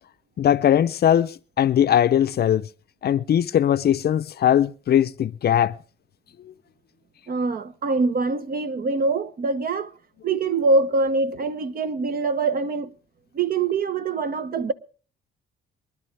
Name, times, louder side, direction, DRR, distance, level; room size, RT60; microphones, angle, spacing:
voice 1, 0.4-2.7 3.0-5.7, left 10 dB, 55° left, 0.6 m, -20 dB
voice 2, 7.3-9.9 10.2-12.9 13.3-14.7, right 3 dB, 50° right, 1.0 m, -24 dB
23.5 x 11.0 x 3.4 m
cardioid pair, 90°, 20 cm